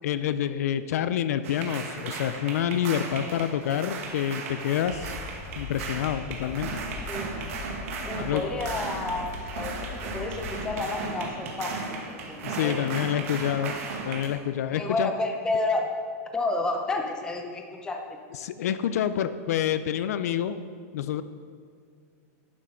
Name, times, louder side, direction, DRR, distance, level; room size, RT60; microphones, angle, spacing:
voice 1, 0.0-5.2 5.6-6.8 8.2-8.4 12.4-13.7 14.0-15.1 18.4-20.6 20.9-21.2, left 10 dB, 70° left, 12 dB, 0.4 m, -27 dB
sound 1, 1.4-14.3, right 4 dB, 55° right, 1.6 m, -36 dB
sound 2, 4.9-10.8, left 4 dB, 45° left, 2.9 m, -40 dB
voice 2, 8.0-12.9 14.7-15.9 16.3-18.0, left 2 dB, 10° left, 4 dB, 0.7 m, -31 dB
10.5 x 6.2 x 5.5 m, 2.1 s
supercardioid pair, 175°, 9 cm